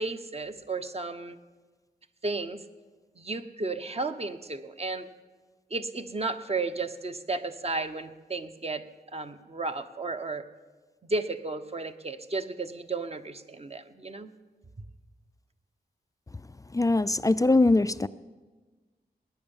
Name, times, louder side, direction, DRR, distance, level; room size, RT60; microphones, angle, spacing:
voice 1, 0.0-1.4 2.2-2.6 3.2-5.1 5.7-8.8 9.1-10.4 11.0-14.3, right 3 dB, 35° right, 8 dB, 1.0 m, -33 dB
voice 2, 16.7-18.1, left 2 dB, 20° left, 15 dB, 0.4 m, -22 dB
19.5 x 9.9 x 7.1 m, 1.3 s
cardioid pair, 65°, 17 cm